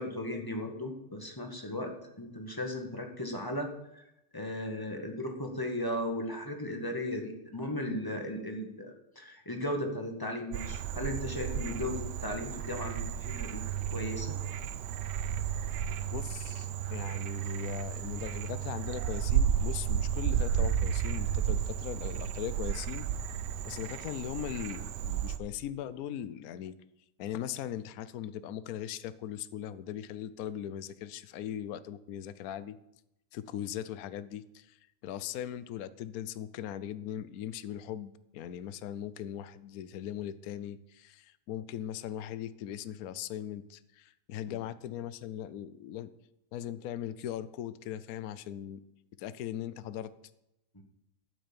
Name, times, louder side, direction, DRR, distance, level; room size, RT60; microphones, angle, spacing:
voice 1, 0.0-4.0 4.3-13.6 13.9-14.4 44.5-44.6, left 1 dB, 15° left, 3 dB, 1.7 m, -36 dB
Frog, 10.5-25.4, right 9 dB, 90° right, 1.4 m, -33 dB
voice 2, 16.1-23.1 23.6-26.7 27.2-32.8 33.3-34.8 35.0-46.1 46.5-48.8 49.2-50.1, left 11 dB, 65° left, 15 dB, 1.1 m, -39 dB
12.5 x 6.2 x 8.8 m, 0.85 s
omnidirectional pair, 1.8 m